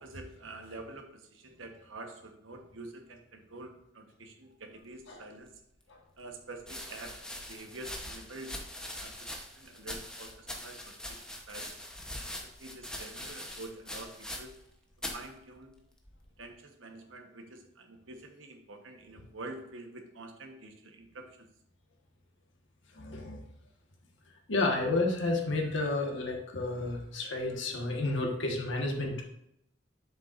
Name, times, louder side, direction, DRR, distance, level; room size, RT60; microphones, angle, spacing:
voice 1, 0.0-5.5 6.2-7.1 7.5-8.5 9.0-10.8 11.1-11.7 12.2-12.3 12.6-14.6 15.1-15.7 16.4-21.3, right 2 dB, 85° right, 4 dB, 1.2 m, -47 dB
sound 1, 5.5-5.6 6.6-14.7 15.0-15.3 16.0-16.5, left 1 dB, 5° left, 0.9 m, -42 dB
voice 2, 22.9-23.4 24.5-29.2, left 2 dB, 70° left, 1 dB, 1.5 m, -31 dB
8.0 x 6.7 x 2.5 m, 0.78 s
head